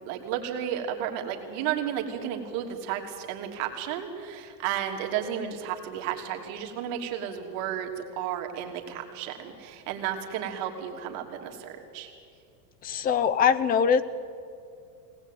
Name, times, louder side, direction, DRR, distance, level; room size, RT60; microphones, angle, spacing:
voice 1, 0.0-12.1, right 9 dB, 50° right, 3 dB, 3.1 m, -33 dB
voice 2, 12.8-14.0, left 7 dB, 20° left, 15 dB, 0.6 m, -22 dB
22.5 x 19.0 x 9.2 m, 2.4 s
supercardioid pair, 155°, 50 cm